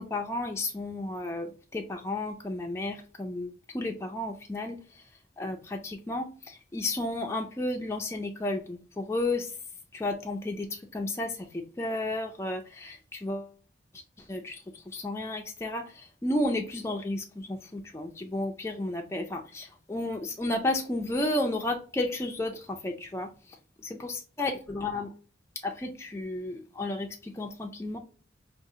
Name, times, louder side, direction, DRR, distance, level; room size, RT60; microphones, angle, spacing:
voice 1, 0.0-5.0 5.4-9.5 9.9-13.5 14.2-23.3 24.0-25.1 25.6-28.0, left 2 dB, 15° left, 3 dB, 0.3 m, -32 dB
4.6 x 2.4 x 2.7 m, 0.38 s
head